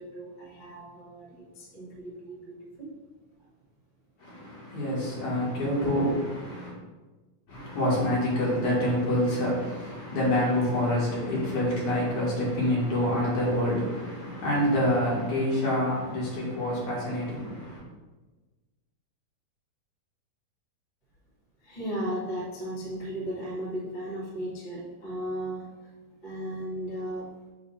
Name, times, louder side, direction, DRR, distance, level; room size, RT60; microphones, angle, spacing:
voice 1, 0.0-2.9 21.6-25.9 26.2-27.3, equal, 30° left, -5 dB, 0.8 m, -36 dB
voice 2, 4.2-6.7 7.5-17.8, left 1 dB, 60° left, -6 dB, 3.1 m, -27 dB
7.2 x 2.7 x 5.8 m, 1.3 s
omnidirectional pair, 4.1 m